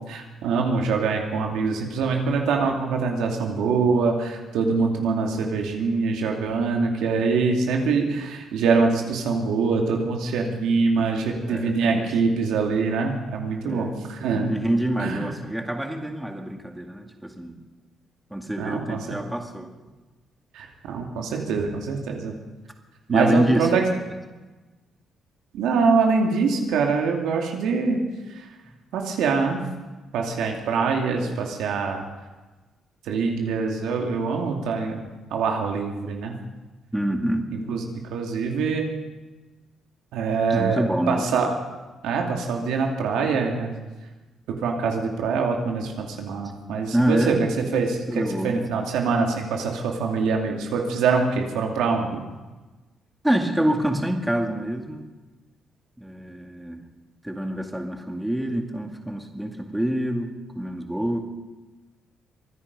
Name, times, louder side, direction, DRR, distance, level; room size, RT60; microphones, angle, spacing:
voice 1, 0.1-14.6 15.0-15.3 18.6-19.2 20.5-22.3 23.1-23.8 25.5-28.0 28.3-28.5 28.9-29.6 30.1-32.0 33.1-35.0 35.3-36.3 37.7-37.8 38.1-38.9 40.1-41.5 42.0-43.7 44.6-47.4 47.7-52.2, right 4 dB, 90° right, 2 dB, 2.5 m, -24 dB
voice 2, 11.5-12.2 13.6-13.9 14.3-17.6 18.3-19.7 23.1-23.9 36.9-37.4 40.5-41.3 46.9-47.4 48.1-48.7 53.2-55.1 56.0-56.8 57.2-61.2, right 1 dB, 5° right, 3 dB, 2.1 m, -26 dB
24.0 x 10.0 x 5.4 m, 1.2 s
cardioid pair, 90°, 0 cm